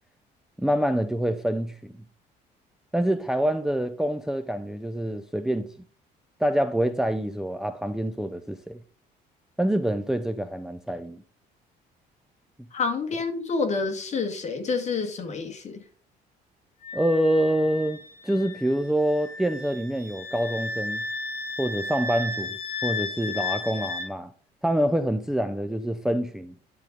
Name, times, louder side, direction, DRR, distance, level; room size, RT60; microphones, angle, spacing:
voice 1, 0.6-1.9 2.9-5.7 6.4-8.8 9.6-11.2 16.9-21.0 21.6-24.3 24.6-26.5, right 1 dB, 5° right, 0.5 m, -26 dB
voice 2, 12.7-15.8, left 4 dB, 45° left, 2.1 m, -28 dB
Wind instrument woodwind instrument, 16.8-24.1, left 3 dB, 70° left, 1.9 m, -34 dB
10.5 x 4.0 x 5.3 m
cardioid pair, 110°, 17 cm